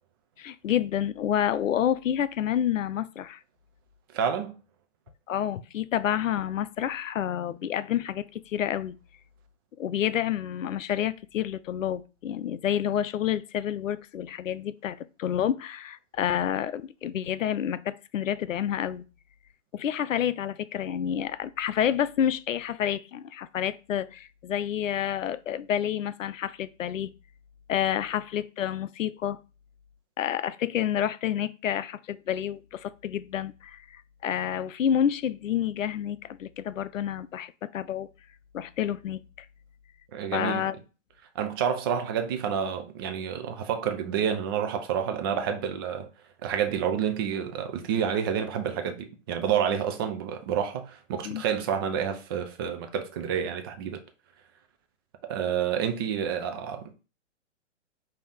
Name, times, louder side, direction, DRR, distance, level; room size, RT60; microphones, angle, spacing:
voice 1, 0.4-3.4 5.3-9.0 9.8-19.0 19.7-27.1 27.7-29.4 30.2-38.1 38.5-39.5 40.3-40.7 51.2-51.4, left 10 dB, 90° left, 0.5 m, -29 dB
voice 2, 4.1-4.5 40.1-40.6 41.4-46.1 46.4-54.0 55.2-56.9, right 8 dB, 20° right, 0.3 m, -29 dB
5.3 x 2.8 x 3.4 m
hypercardioid pair, 125°, 37 cm